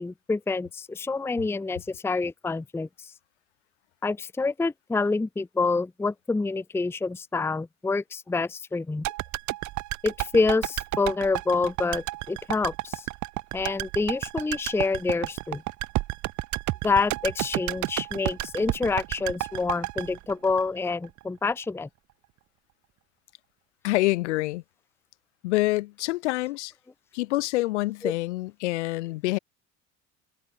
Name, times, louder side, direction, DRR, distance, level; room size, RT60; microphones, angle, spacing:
voice 1, 0.0-3.1 4.0-9.0 10.0-13.1 13.5-15.6 16.8-21.9 28.0-28.1, left 3 dB, 5° left, 0.6 m, -27 dB
sound 1, 9.0-21.2 21.5-21.6, right 18 dB, 55° right, 1.3 m, -31 dB
voice 2, 23.8-24.6 25.4-26.7 27.1-29.4, left 19 dB, 75° left, 2.3 m, -26 dB
hypercardioid pair, 70°, 35 cm